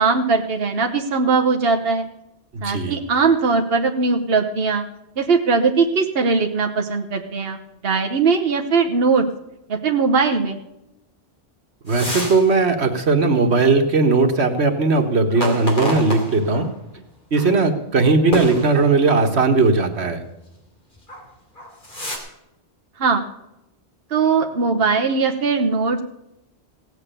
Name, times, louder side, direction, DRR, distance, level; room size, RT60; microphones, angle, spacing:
voice 1, 0.0-2.1 2.6-4.8 5.2-9.2 9.7-10.6 23.0-23.2 24.1-26.0, right 4 dB, 65° right, 3 dB, 1.3 m, -20 dB
voice 2, 2.5-3.0 11.8-16.7 17.3-20.2, right 3 dB, 90° right, 6 dB, 1.8 m, -18 dB
sound 1, 11.9-12.5 12.9-13.0 15.3-16.7 17.3-17.5 18.3-19.2 21.0-21.2 21.6-22.2, equal, 50° left, 3.3 m, -29 dB
17.0 x 8.3 x 6.8 m, 0.90 s
omnidirectional pair, 1.1 m